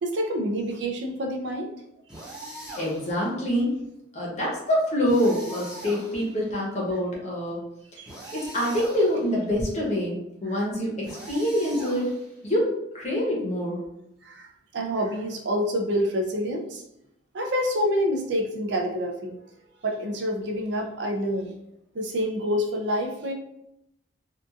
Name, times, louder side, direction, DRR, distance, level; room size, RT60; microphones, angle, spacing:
voice 1, 0.0-1.7 8.0-8.3 10.5-10.6 14.2-16.8 17.3-19.4 19.8-21.5 21.9-23.3, equal, 65° right, 3 dB, 0.4 m, -27 dB
sound 1, 2.1-3.2 5.1-6.5 8.1-9.3 11.0-12.5, right 1 dB, 5° right, 0.6 m, -41 dB
voice 2, 2.8-3.7 4.1-7.6 8.3-12.1 12.4-13.8, equal, 35° left, -4 dB, 0.8 m, -26 dB
2.8 x 2.3 x 2.3 m, 0.82 s
head